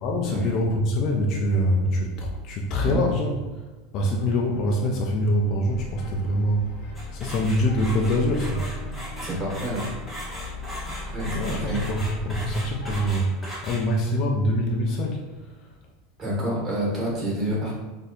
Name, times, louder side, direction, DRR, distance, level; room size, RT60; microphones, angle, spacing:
voice 1, 0.0-3.3 3.9-6.7 7.1-8.7 8.9-9.0 11.3-15.3, equal, 45° left, -1 dB, 0.4 m, -24 dB
sound 1, 5.7-13.1, left 2 dB, 70° left, 0.9 m, -36 dB
sound 2, 7.0-14.1, equal, 10° left, 1.1 m, -38 dB
voice 2, 9.2-9.9 10.9-11.8 16.2-17.7, equal, 25° right, -6 dB, 1.5 m, -28 dB
4.1 x 2.7 x 2.4 m, 1.2 s
supercardioid pair, 150°, 0 cm